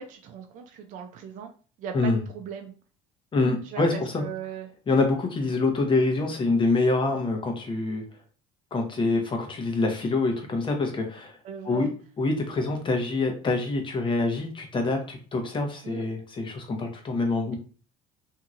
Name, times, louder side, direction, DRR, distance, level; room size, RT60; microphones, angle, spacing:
voice 1, 0.0-1.5 1.8-2.7 3.6-4.7 11.4-11.9 15.8-16.0, right 7 dB, 55° right, 4 dB, 0.5 m, -38 dB
voice 2, 3.3-4.2 4.9-8.0 8.7-11.4 11.6-11.9 12.2-17.5, left 3 dB, 30° left, 3 dB, 0.9 m, -25 dB
2.8 x 2.7 x 2.4 m, 0.38 s
supercardioid pair, 95°, 16 cm